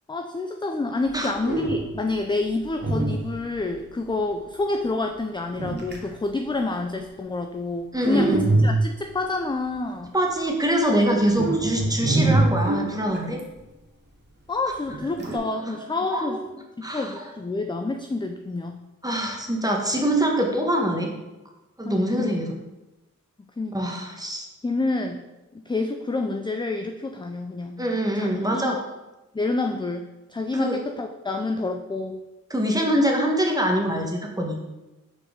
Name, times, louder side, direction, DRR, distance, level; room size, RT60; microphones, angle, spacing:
voice 1, 0.1-10.1 14.5-16.4 16.8-18.8 21.8-22.3 23.6-24.0 24.6-25.2 25.5-27.8 28.1-28.8 29.3-32.2, left 3 dB, 15° left, 5 dB, 0.4 m, -28 dB
sound 1, 1.0-1.1 1.4-2.1 2.8-3.7 5.6-6.1 8.0-9.1 11.3-13.4 14.9-15.4, right 2 dB, 35° right, 1.5 m, -24 dB
voice 2, 7.9-8.5 10.1-13.4 15.3-15.8 16.1-16.4 16.8-17.1 19.0-21.1 21.8-22.5 23.7-24.5 27.8-28.8 30.5-30.8 32.5-34.6, right 1 dB, 10° right, 0 dB, 1.4 m, -24 dB
4.7 x 4.2 x 5.2 m, 1.0 s
cardioid pair, 50°, 33 cm